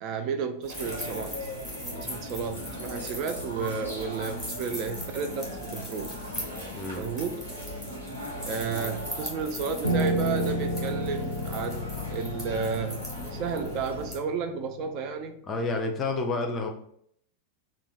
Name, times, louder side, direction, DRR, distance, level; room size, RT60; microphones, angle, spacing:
voice 1, 0.0-1.5 2.0-6.1 7.0-7.5 8.5-15.4, right 6 dB, 40° right, 6 dB, 0.3 m, -32 dB
sound 1, 0.6-14.2, equal, 5° right, 1.3 m, -41 dB
sound 2, 0.7-14.1, left 1 dB, 90° right, 0.9 m, -39 dB
voice 2, 6.7-7.1 8.7-8.9 15.5-16.7, left 3 dB, 25° left, 3 dB, 0.6 m, -30 dB
Piano, 9.8-15.1, right 1 dB, 80° left, 0.4 m, -32 dB
2.8 x 2.2 x 4.1 m, 0.68 s
figure-of-eight pair, 90°, 0 cm